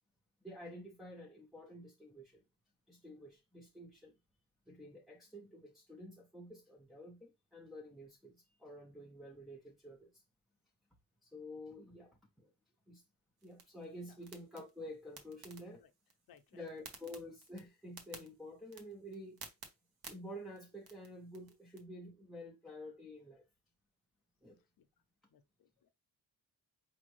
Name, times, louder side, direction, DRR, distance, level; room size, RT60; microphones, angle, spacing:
voice 1, 0.4-2.4 2.9-4.1 4.7-10.2 11.2-12.5 12.9-13.0 13.4-15.8 16.5-19.5 20.1-23.5 24.4-24.6, left 1 dB, ahead, 0.3 m, -50 dB
sound 1, 13.4-21.8, right 4 dB, 65° right, 1.0 m, -57 dB
voice 2, 16.3-16.7 24.5-25.0 25.3-25.9, left 8 dB, 60° left, 0.6 m, -66 dB
4.9 x 2.6 x 3.0 m
wide cardioid pair, 170°, 40 cm